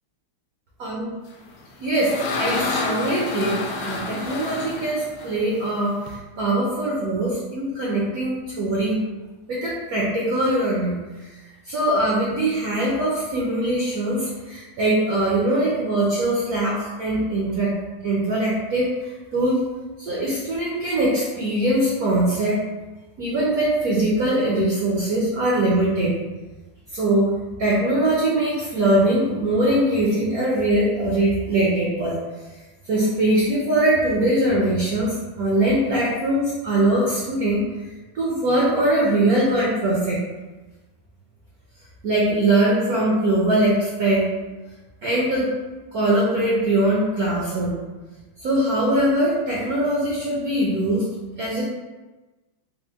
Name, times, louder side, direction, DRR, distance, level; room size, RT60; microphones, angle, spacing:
sound 1, 1.5-6.2, left 3 dB, 75° left, 1.3 m, -29 dB
voice 1, 1.8-9.0 9.5-11.0 11.7-17.7 18.0-19.6 20.0-22.6 23.2-26.2 26.9-32.2 32.9-37.6 38.1-40.2 42.0-44.3 45.0-45.6 45.9-47.8 48.4-51.1 51.4-51.6, right 1 dB, 70° right, -5 dB, 0.8 m, -22 dB
4.1 x 2.1 x 3.4 m, 1.2 s
omnidirectional pair, 2.4 m